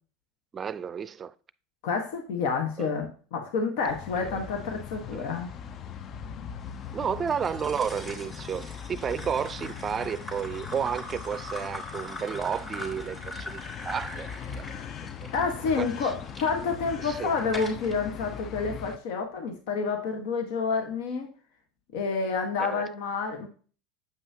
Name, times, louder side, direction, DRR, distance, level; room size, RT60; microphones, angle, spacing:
voice 1, 0.5-1.3 2.8-2.9 4.3-4.4 5.1-5.3 6.9-14.7 15.8-15.9 17.0-17.3 22.6-22.9, right 7 dB, 30° right, 0.5 m, -32 dB
voice 2, 1.8-5.5 14.7-14.9 15.3-21.3 21.9-23.5, left 5 dB, 70° left, 1.3 m, -29 dB
sound 1, 3.9-19.0, left 8 dB, 45° left, 0.6 m, -40 dB
sound 2, 7.3-16.5 17.0-18.0, left 1 dB, 25° left, 3.3 m, -42 dB
8.1 x 5.6 x 2.8 m
hypercardioid pair, 95°, 0 cm